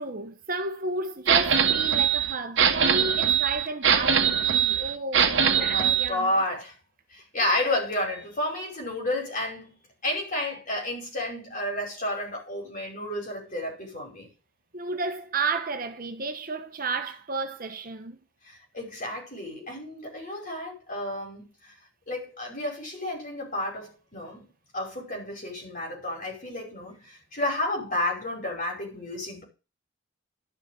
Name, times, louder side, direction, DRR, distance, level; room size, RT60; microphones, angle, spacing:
voice 1, 0.0-6.4 7.4-7.5 14.7-18.2, right 3 dB, 45° right, 1.1 m, -32 dB
sound 1, 1.3-6.1, right 8 dB, 60° right, 1.3 m, -22 dB
voice 2, 5.5-6.8 7.1-9.8 10.0-14.3 18.4-21.7 22.1-29.4, left 1 dB, 40° left, 5.3 m, -31 dB
11.5 x 6.4 x 6.5 m
head